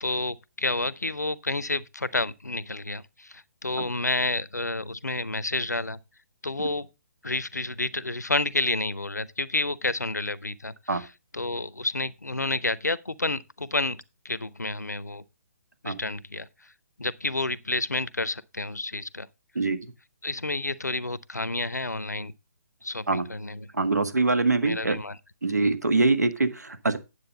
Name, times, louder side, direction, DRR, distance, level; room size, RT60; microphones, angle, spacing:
voice 1, 0.0-6.0 6.4-6.9 7.2-11.1 11.3-15.2 15.8-16.5 17.0-19.3 20.2-22.3 22.8-23.7 24.6-25.2, left 2 dB, 85° left, 0.7 m, -30 dB
voice 2, 23.7-25.0 25.4-27.0, right 3 dB, 75° right, 1.4 m, -24 dB
9.7 x 7.7 x 3.9 m
figure-of-eight pair, 135°, 9 cm